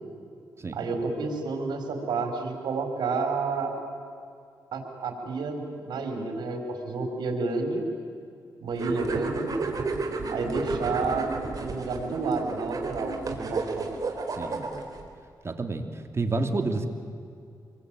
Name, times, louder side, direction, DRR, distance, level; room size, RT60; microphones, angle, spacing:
voice 1, 0.7-3.7 4.7-7.8 8.6-9.5 10.3-13.9, right 3 dB, 90° right, 4 dB, 4.7 m, -30 dB
sound 1, 8.7-15.0, right 4 dB, 55° right, 4.1 m, -32 dB
voice 2, 14.3-14.7 15.4-16.9, right 3 dB, 40° right, 5 dB, 2.8 m, -30 dB
27.0 x 23.0 x 9.2 m, 2.4 s
cardioid pair, 75°, 7 cm